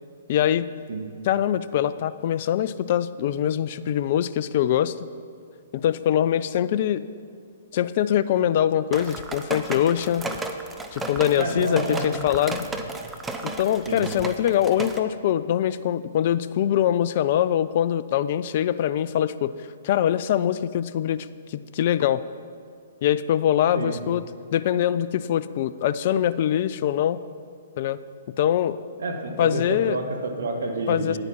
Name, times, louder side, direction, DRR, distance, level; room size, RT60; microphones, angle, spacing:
voice 1, 0.3-0.7 1.3-4.9 5.7-7.0 7.7-10.3 10.9-12.6 13.4-19.5 19.8-22.2 23.0-24.2 24.5-27.2 27.8-28.0 28.4-28.8 29.4-30.0 30.9-31.2, left 10 dB, 45° left, 15 dB, 0.4 m, -23 dB
sound 1, 8.9-15.0, right 2 dB, 10° right, 0.7 m, -33 dB
voice 2, 11.4-12.1 12.7-12.8 13.9-14.0 23.7-23.9 29.0-31.2, right 2 dB, 65° right, 3 dB, 1.6 m, -29 dB
9.6 x 8.9 x 5.8 m, 2.2 s
figure-of-eight pair, 120°, 0 cm